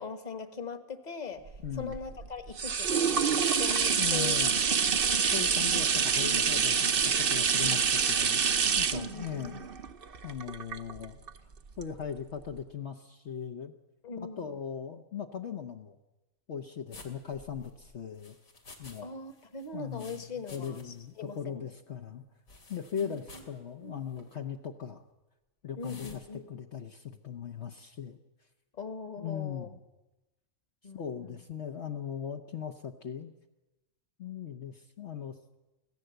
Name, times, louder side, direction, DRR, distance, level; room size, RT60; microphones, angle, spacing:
voice 1, 0.0-3.2 3.6-4.5 4.9-5.1 8.9-9.7 14.0-14.6 19.0-21.6 23.0-23.4 25.8-26.5 28.7-29.7 30.8-31.4, left 4 dB, 30° left, 10 dB, 1.5 m, -41 dB
sound 1, 1.5-11.3 11.8-11.9, right 6 dB, 50° right, 1.0 m, -27 dB
voice 2, 1.6-1.9 4.0-4.5 5.3-9.6 10.2-11.2 11.8-13.7 14.2-16.0 16.5-18.4 18.8-19.1 19.7-20.2 20.5-22.2 22.7-25.0 25.6-28.2 29.2-29.8 30.9-33.3 34.2-35.4, left 8 dB, 60° left, 3 dB, 1.2 m, -39 dB
sound 2, 16.9-19.0 19.3-21.1 21.4-21.5 22.5-23.6 24.1-24.3 25.8-26.2, left 2 dB, 90° left, 3.2 m, -52 dB
24.5 x 16.5 x 7.9 m, 1.0 s
omnidirectional pair, 1.4 m